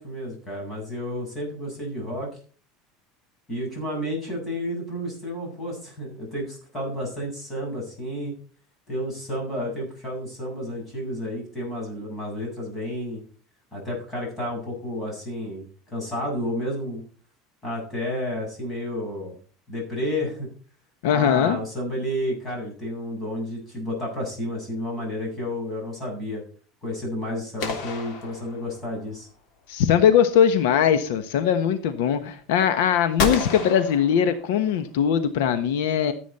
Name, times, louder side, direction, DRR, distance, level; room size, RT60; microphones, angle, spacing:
voice 1, 0.0-2.3 3.5-8.3 8.9-13.2 13.7-17.0 17.6-19.3 19.7-20.5 21.1-26.4 26.8-29.3, equal, 20° left, -1 dB, 7.7 m, -31 dB
voice 2, 21.0-21.6 29.7-36.1, left 8 dB, 80° left, 10 dB, 1.2 m, -20 dB
sound 1, 27.6-29.1 33.2-34.8, left 4 dB, 55° left, 3.2 m, -30 dB
14.5 x 8.4 x 4.2 m, 0.40 s
cardioid pair, 165°, 0 cm